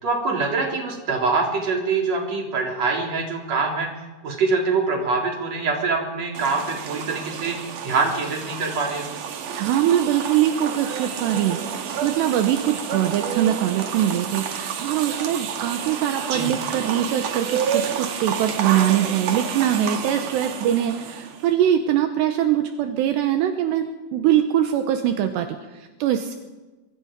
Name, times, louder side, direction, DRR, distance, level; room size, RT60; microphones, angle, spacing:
voice 1, 0.0-3.9 4.2-7.6 7.8-9.0 16.3-16.5, right 4 dB, 40° right, 0 dB, 4.4 m, -24 dB
sound 1, 6.3-21.5, right 7 dB, 55° right, 2.7 m, -30 dB
voice 2, 9.5-11.6 12.0-26.4, right 11 dB, 75° right, 6 dB, 3.1 m, -22 dB
25.0 x 23.5 x 5.2 m, 1.2 s
omnidirectional pair, 5.1 m